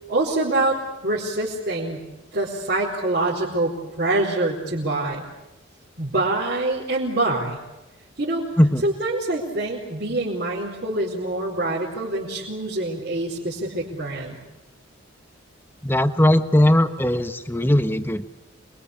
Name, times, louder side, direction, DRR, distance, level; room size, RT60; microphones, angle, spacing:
voice 1, 0.1-2.0 2.3-5.2 6.0-7.6 8.2-8.5 8.8-14.4, right 2 dB, 50° right, -4 dB, 4.6 m, -25 dB
voice 2, 15.8-18.4, left 1 dB, 10° left, 10 dB, 1.2 m, -19 dB
27.5 x 22.5 x 8.6 m, 1.0 s
head